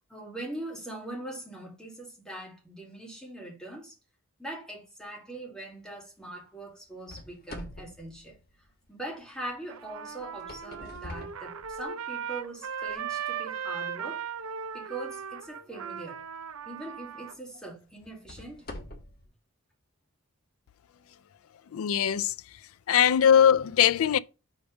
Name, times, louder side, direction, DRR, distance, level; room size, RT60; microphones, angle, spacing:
voice 1, 0.0-4.0 4.4-8.4 8.9-14.3 14.7-16.2 16.7-18.7, right 2 dB, 5° left, 2.1 m, -41 dB
sound 1, 7.1-9.1 10.2-12.2 12.8-12.9 13.6-13.7 16.3-16.5 17.0-17.1 18.0-19.3, left 1 dB, 45° left, 1.3 m, -45 dB
Trumpet, 9.7-17.3, right 7 dB, 80° right, 0.6 m, -37 dB
voice 2, 21.7-22.3 22.9-24.2, left 9 dB, 75° left, 0.3 m, -21 dB
5.2 x 4.9 x 4.9 m
head